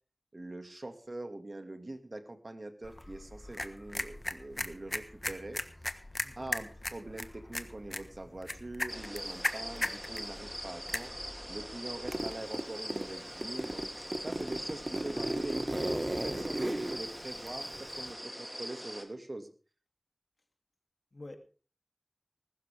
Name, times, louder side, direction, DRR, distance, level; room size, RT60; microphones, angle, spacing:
voice 1, 0.3-5.6 6.4-11.1 11.5-13.8 14.2-19.5, right 2 dB, 60° right, 6 dB, 2.2 m, -43 dB
sound 1, 2.8-12.3, left 1 dB, 35° left, 1.4 m, -39 dB
voice 2, 6.2-6.5 16.2-16.7 21.1-21.4, left 2 dB, 70° left, 4 dB, 2.8 m, -48 dB
sound 2, 8.9-19.0, equal, 5° right, 3.0 m, -42 dB
Zipper (clothing), 12.1-13.1 13.4-18.1, right 1 dB, 40° right, 1.7 m, -35 dB
20.0 x 12.5 x 3.6 m, 0.37 s
wide cardioid pair, 50°, 0 cm